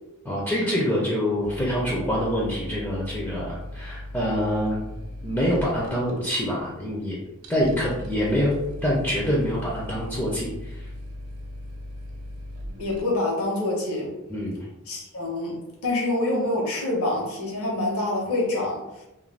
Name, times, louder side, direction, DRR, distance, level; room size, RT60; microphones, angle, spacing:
voice 1, 0.2-4.8 5.2-7.2 7.5-8.5 8.8-10.9 14.3-14.6, equal, 10° left, -5 dB, 0.3 m, -25 dB
sound 1, 1.4-13.0, left 1 dB, 80° right, 0.4 m, -38 dB
voice 2, 12.8-14.1 14.9-15.5 15.8-19.0, left 2 dB, 80° left, -3 dB, 0.9 m, -26 dB
2.4 x 2.1 x 3.2 m, 0.96 s
head